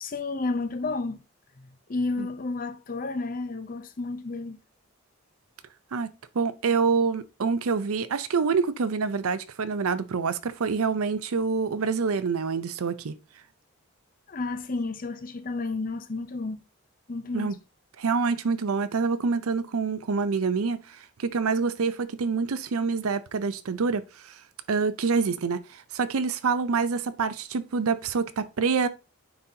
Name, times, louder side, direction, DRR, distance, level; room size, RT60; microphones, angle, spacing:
voice 1, 0.0-1.2 1.6-4.6 14.3-16.6 17.1-17.6, left 3 dB, 40° left, 0.6 m, -31 dB
voice 2, 5.9-13.1 17.3-17.6 18.0-24.0 24.7-28.9, right 5 dB, 70° right, 0.5 m, -26 dB
9.4 x 4.0 x 2.8 m
head